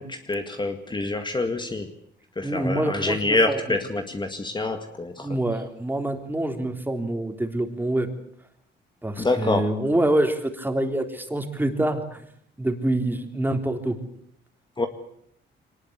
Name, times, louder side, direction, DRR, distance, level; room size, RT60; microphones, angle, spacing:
voice 1, 0.0-1.9 2.4-5.4 9.2-9.8 14.8-14.9, left 2 dB, 25° left, 6 dB, 1.9 m, -26 dB
voice 2, 2.4-3.6 5.2-8.1 9.0-12.2 12.6-14.0, right 1 dB, 10° right, 5 dB, 3.6 m, -26 dB
23.0 x 19.5 x 8.2 m, 0.70 s
cardioid pair, 90°, 20 cm